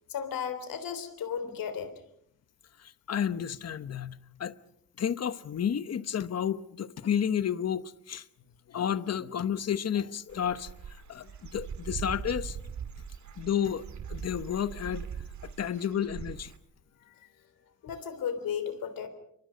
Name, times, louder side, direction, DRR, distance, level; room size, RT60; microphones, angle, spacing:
voice 1, 0.1-1.9 17.8-19.1, left 7 dB, 85° left, 3.7 m, -34 dB
voice 2, 3.1-4.5 5.0-8.2 8.7-10.7 11.1-12.6 13.4-15.1 15.4-16.5, left 8 dB, 50° left, 1.0 m, -31 dB
Dog / Bird, 10.3-16.6, right 7 dB, 55° right, 2.0 m, -41 dB
28.5 x 24.5 x 5.2 m
wide cardioid pair, 140°, 33 cm